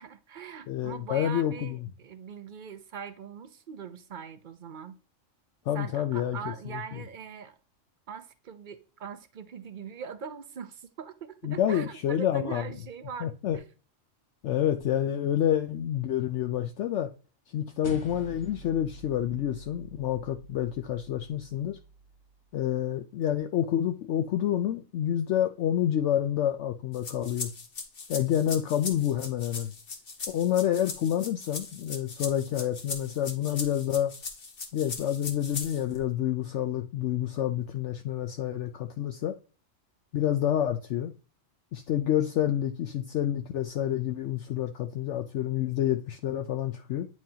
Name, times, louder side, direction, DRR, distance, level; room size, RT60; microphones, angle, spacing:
voice 1, 0.0-5.0 5.7-7.6 8.1-13.7, right 6 dB, 50° right, 0.7 m, -41 dB
voice 2, 0.7-1.8 5.7-6.4 11.4-12.6 13.2-13.6 14.4-17.1 17.5-21.8 22.5-27.5 28.1-29.7 30.3-34.1 34.7-39.4 40.1-41.1 41.7-47.1, left 11 dB, 70° left, 0.8 m, -28 dB
sound 1, 17.8-22.5, equal, 25° left, 0.9 m, -47 dB
sound 2, 26.9-36.0, left 4 dB, 45° left, 1.2 m, -39 dB
8.9 x 4.6 x 2.8 m
omnidirectional pair, 1.4 m